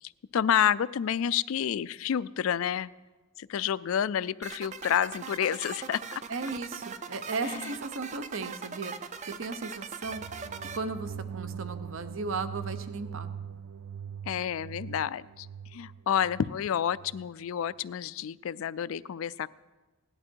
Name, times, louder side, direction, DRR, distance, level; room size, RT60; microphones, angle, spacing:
voice 1, 0.0-2.9 3.4-6.0 7.4-7.7 14.3-15.5 15.7-19.5, left 9 dB, 70° left, 17 dB, 0.3 m, -29 dB
sound 1, 4.4-10.8, right 5 dB, 35° right, 0.5 m, -40 dB
voice 2, 6.3-10.2 10.7-13.3, right 4 dB, 60° right, 11 dB, 0.8 m, -36 dB
sound 2, 10.0-17.3, right 7 dB, 85° right, 0.4 m, -42 dB
17.5 x 11.0 x 4.6 m, 1.2 s
head